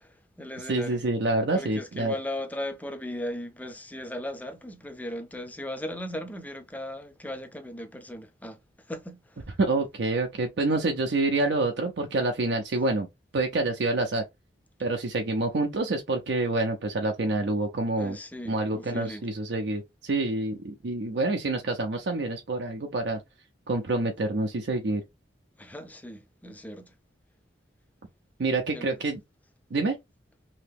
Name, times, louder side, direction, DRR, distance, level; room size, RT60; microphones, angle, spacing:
voice 1, 0.0-1.0 1.5-9.5 18.0-19.3 25.6-26.9 28.7-28.9, left 1 dB, 10° left, 0.5 m, -37 dB
voice 2, 0.7-2.1 9.6-13.1 13.3-14.2 14.8-18.2 18.5-23.2 23.7-25.0 28.4-29.2 29.7-30.0, right 2 dB, 70° right, 0.5 m, -27 dB
2.9 x 2.8 x 3.4 m
head